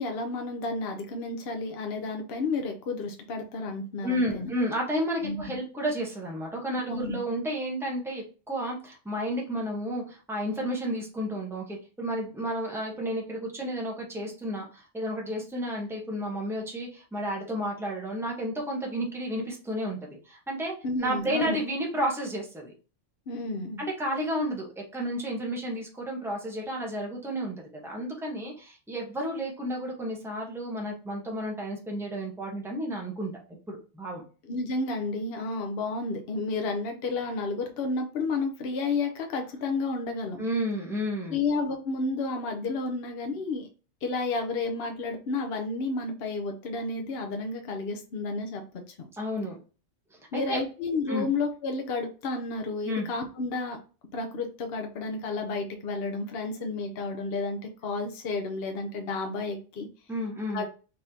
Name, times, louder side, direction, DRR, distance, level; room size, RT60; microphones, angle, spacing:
voice 1, 0.0-4.5 5.2-5.4 6.9-7.2 20.8-21.6 23.3-23.8 34.5-40.4 41.3-43.7 44.0-49.1 50.3-53.8 54.1-59.9 60.5-60.7, left 3 dB, 60° left, 3 dB, 0.9 m, -31 dB
voice 2, 4.0-20.7 21.0-22.7 23.8-33.3 33.7-34.2 40.4-41.4 49.1-49.6 50.3-50.6 51.1-51.3 52.8-53.1 60.1-60.6, equal, ahead, -2 dB, 1.1 m, -32 dB
4.0 x 3.4 x 2.8 m, 0.35 s
omnidirectional pair, 1.2 m